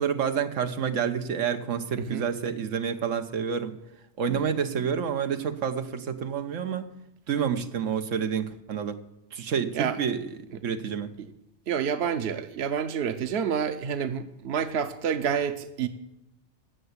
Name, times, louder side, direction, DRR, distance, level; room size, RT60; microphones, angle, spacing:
voice 1, 0.0-3.8 4.2-6.8 7.3-9.0 9.3-11.1, right 7 dB, 85° right, 8 dB, 1.3 m, -29 dB
voice 2, 11.7-15.9, right 7 dB, 60° right, 10 dB, 1.1 m, -28 dB
16.0 x 6.8 x 8.1 m, 0.84 s
omnidirectional pair, 1.3 m